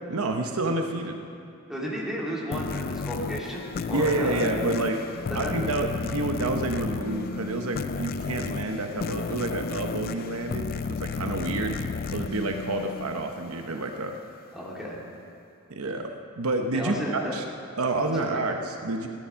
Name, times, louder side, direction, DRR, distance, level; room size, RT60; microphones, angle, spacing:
voice 1, 0.1-1.2 3.9-5.0 5.3-11.8 12.1-14.2 15.7-17.4 17.8-19.1, right 2 dB, 75° right, 4 dB, 1.0 m, -29 dB
voice 2, 1.7-4.5 5.4-5.6 14.5-15.0 16.7-17.3 18.1-18.4, equal, ahead, -5 dB, 2.7 m, -33 dB
sound 1, 2.5-13.7, left 5 dB, 45° left, 0.4 m, -33 dB
16.5 x 10.0 x 5.7 m, 2.5 s
head